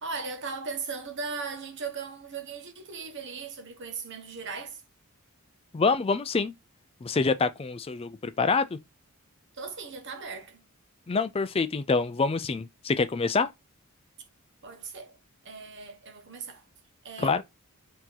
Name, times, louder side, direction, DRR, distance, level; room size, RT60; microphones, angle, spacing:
voice 1, 0.0-4.8 9.5-10.6 14.6-15.2 15.4-16.6 17.0-17.4, right 4 dB, 55° right, 1.1 m, -38 dB
voice 2, 5.7-6.5 7.0-8.8 11.1-13.5 17.2-17.4, left 4 dB, 25° left, 0.4 m, -26 dB
4.5 x 2.9 x 3.9 m
head